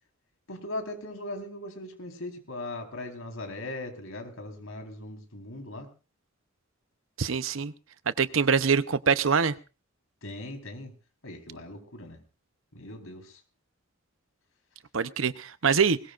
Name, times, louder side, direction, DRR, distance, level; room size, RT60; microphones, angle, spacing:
voice 1, 0.5-5.9 10.2-10.9 11.2-12.2 12.7-13.4, left 1 dB, 85° left, 4.2 m, -39 dB
voice 2, 7.2-7.7 8.2-9.5 14.9-16.0, right 6 dB, 75° right, 0.8 m, -24 dB
21.5 x 20.0 x 2.5 m
head